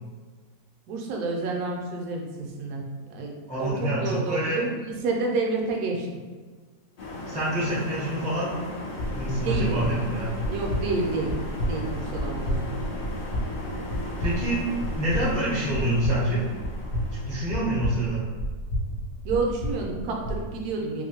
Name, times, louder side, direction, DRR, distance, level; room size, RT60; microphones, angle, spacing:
voice 1, 0.9-2.8 3.1-3.3 3.6-3.7 4.0-6.2 9.4-9.8 10.4-11.3 11.7-12.8 19.2-21.0, right 3 dB, 75° right, 0 dB, 1.1 m, -29 dB
voice 2, 3.5-4.6 7.3-8.5 9.1-10.3 14.2-14.6 14.9-16.4 17.3-18.3, right 1 dB, 10° left, -8 dB, 0.3 m, -27 dB
sound 1, 7.0-18.2, left 1 dB, 80° left, 0.4 m, -37 dB
sound 2, 9.0-20.4, equal, 60° left, 1.0 m, -31 dB
2.9 x 2.6 x 2.8 m, 1.4 s
omnidirectional pair, 1.7 m